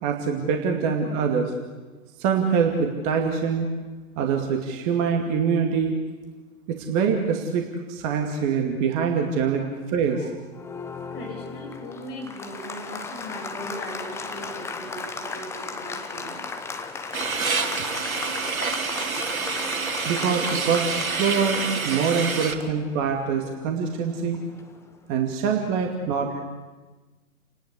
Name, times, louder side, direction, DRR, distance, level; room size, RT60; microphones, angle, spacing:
voice 1, 0.0-1.5 2.2-3.7 4.2-6.0 6.7-9.6 9.9-10.3 20.0-24.4 25.1-26.4, right 6 dB, 30° right, 2 dB, 2.4 m, -24 dB
Applause, 10.5-24.9, left 4 dB, 5° left, 1.0 m, -37 dB
voice 2, 11.1-16.6 21.4-21.6 22.2-22.3, equal, 20° left, 1 dB, 6.8 m, -39 dB
sound 1, 17.1-22.5, right 4 dB, 70° right, 2.9 m, -28 dB
30.0 x 19.0 x 8.4 m, 1.3 s
figure-of-eight pair, 125°, 42 cm